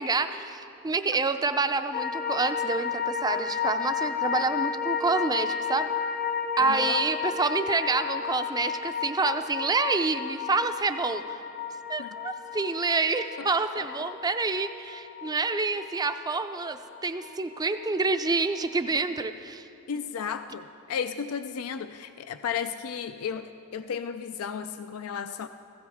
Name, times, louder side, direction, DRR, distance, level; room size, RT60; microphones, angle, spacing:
voice 1, 0.0-5.9 6.6-11.4 11.9-19.7, right 3 dB, 20° right, 9 dB, 0.5 m, -28 dB
sound 1, 1.9-18.3 18.6-18.7, left 7 dB, 35° left, 0.7 m, -32 dB
voice 2, 6.6-7.0 12.0-12.1 13.4-13.5 19.9-25.5, left 7 dB, 70° left, 10 dB, 0.4 m, -34 dB
16.5 x 16.0 x 3.6 m, 2.8 s
head